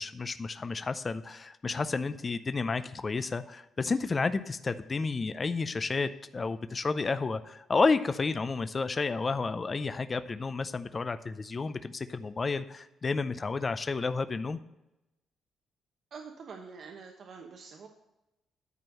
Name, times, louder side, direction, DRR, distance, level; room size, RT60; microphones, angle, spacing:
voice 1, 0.0-14.6, left 4 dB, 30° left, 12 dB, 0.5 m, -31 dB
voice 2, 16.1-17.9, right 5 dB, 60° right, 2 dB, 1.1 m, -46 dB
11.0 x 4.5 x 6.5 m, 0.92 s
cardioid pair, 90°, 0 cm